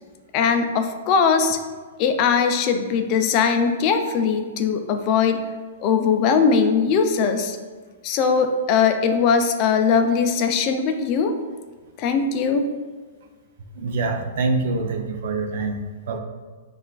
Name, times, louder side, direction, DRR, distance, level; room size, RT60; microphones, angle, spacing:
voice 1, 0.3-1.6 2.0-5.4 5.8-7.6 8.0-11.3 12.0-12.7, left 6 dB, 35° left, 6 dB, 0.3 m, -20 dB
voice 2, 13.7-16.2, right 3 dB, 60° right, 5 dB, 0.5 m, -25 dB
5.6 x 2.4 x 2.3 m, 1.4 s
hypercardioid pair, 145°, 0 cm